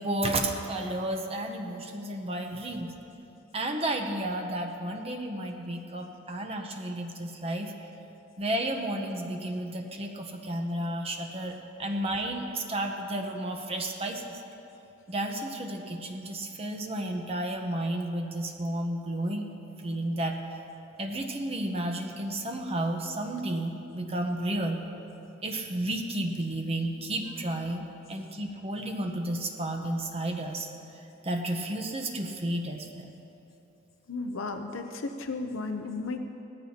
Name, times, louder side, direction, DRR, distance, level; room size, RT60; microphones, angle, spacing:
voice 1, 0.0-2.9 3.5-7.7 8.4-14.4 15.1-19.5 19.8-20.4 21.0-24.8 25.4-30.7 31.2-33.1, right 1 dB, 30° right, 2 dB, 0.8 m, -32 dB
voice 2, 34.1-36.2, left 3 dB, 80° left, 5 dB, 0.7 m, -34 dB
19.0 x 14.0 x 2.8 m, 2.9 s
head